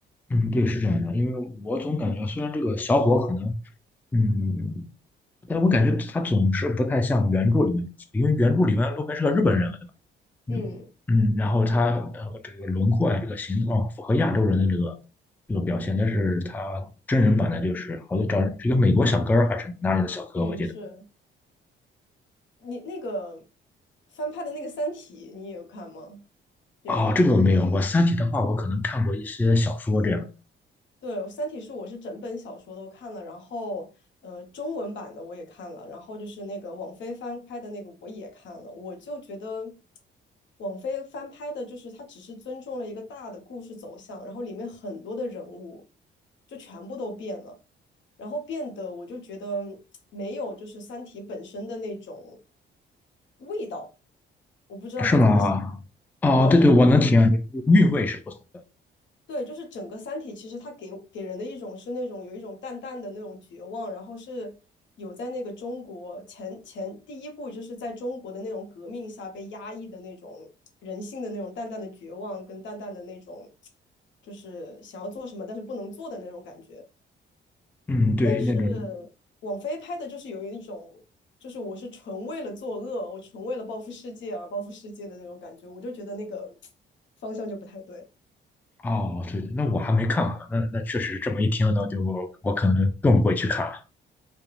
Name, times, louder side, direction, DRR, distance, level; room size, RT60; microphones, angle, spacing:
voice 1, 0.3-3.5 4.1-4.9 5.5-7.9 8.1-9.8 10.5-10.7 11.1-14.9 15.5-20.7 26.9-30.3 55.0-55.7 56.2-58.3 77.9-78.9 88.8-93.8, left 2 dB, 10° left, 0.3 m, -22 dB
voice 2, 10.5-10.9 20.3-21.1 22.6-23.5 24.1-26.2 26.8-27.3 31.0-33.9 34.2-39.8 40.6-45.8 46.5-47.6 48.2-49.8 50.1-52.4 53.4-53.9 54.7-55.4 56.4-56.6 59.3-64.6 65.0-70.5 70.8-73.5 74.2-76.8 78.2-79.1 79.4-81.0 81.4-86.6 87.2-88.1, left 1 dB, 70° left, 0.8 m, -36 dB
2.3 x 2.2 x 3.0 m
cardioid pair, 90°, 20 cm